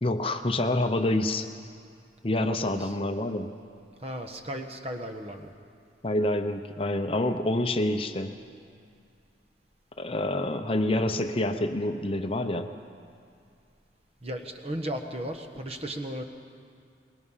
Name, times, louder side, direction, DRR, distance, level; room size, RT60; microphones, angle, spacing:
voice 1, 0.0-1.5 2.2-3.5 6.0-8.3 10.0-12.7, left 1 dB, 30° left, 7 dB, 0.8 m, -27 dB
voice 2, 2.4-3.0 4.0-5.5 14.2-16.2, right 1 dB, 35° right, 5 dB, 1.3 m, -35 dB
24.0 x 20.0 x 5.7 m, 2.3 s
head